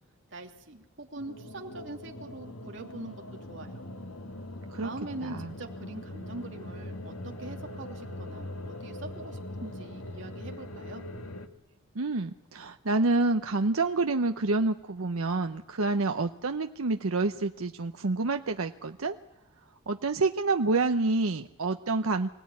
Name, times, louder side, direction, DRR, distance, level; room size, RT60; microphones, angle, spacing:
voice 1, 0.3-3.2 3.5-3.8 4.8-11.0, right 2 dB, 60° right, 2 dB, 2.8 m, -43 dB
sound 1, 1.2-11.5, left 1 dB, 90° left, 1.8 m, -41 dB
voice 2, 5.2-5.5 11.9-19.2 19.9-22.3, right 3 dB, 85° right, 6 dB, 0.8 m, -28 dB
25.0 x 18.0 x 9.7 m, 0.93 s
head